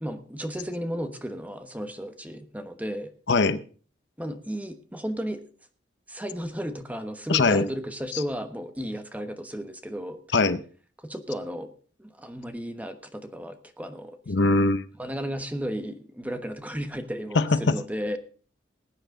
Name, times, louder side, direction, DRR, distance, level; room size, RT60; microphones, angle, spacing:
voice 1, 0.0-3.1 4.2-5.4 6.1-10.2 11.0-11.7 12.0-14.2 15.0-18.2, equal, 10° right, 7 dB, 1.2 m, -34 dB
voice 2, 3.3-3.6 7.3-7.7 10.3-10.6 14.3-14.8 17.3-17.8, left 3 dB, 65° left, 13 dB, 0.7 m, -21 dB
20.0 x 9.1 x 3.8 m, 0.41 s
head